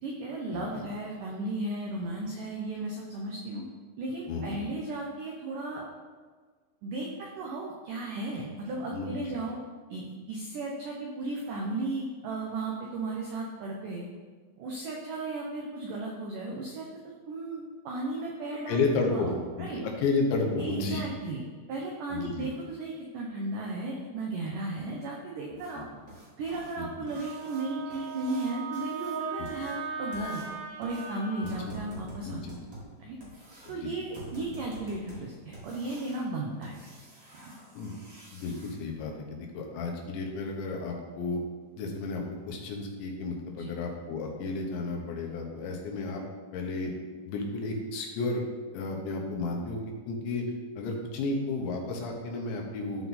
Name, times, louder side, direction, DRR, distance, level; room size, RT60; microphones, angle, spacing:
voice 1, 0.0-3.6 4.0-5.9 6.8-9.6 9.9-14.1 14.6-16.9 17.3-18.8 19.1-19.8 20.6-21.4 21.7-25.9 26.4-30.4 30.8-32.4 33.0-33.2 33.7-36.8 37.4-37.5 43.6-43.7, right 2 dB, 85° right, -1 dB, 1.8 m, -35 dB
voice 2, 0.5-0.9 4.3-4.6 8.8-9.1 18.7-19.3 19.6-21.0 22.1-22.5 25.8-25.9 26.8-26.9 29.4-29.5 31.4-31.5 32.2-32.5 33.7-33.9 37.8-37.9 38.3-41.4 41.8-46.2 46.5-46.9 47.3-48.4 48.7-49.8 50.1-50.4 50.8-53.1, left 3 dB, 90° left, 1 dB, 3.5 m, -32 dB
sound 1, 25.5-38.7 41.1-41.2 41.6-41.7 42.2-42.3 42.7-42.8 43.3-43.5 43.8-43.9 44.4-44.5, right 1 dB, 30° right, 2.5 m, -48 dB
Wind instrument woodwind instrument, 27.1-31.5, right 5 dB, 65° right, 1.9 m, -39 dB
13.0 x 4.7 x 4.2 m, 1.5 s
omnidirectional pair, 5.0 m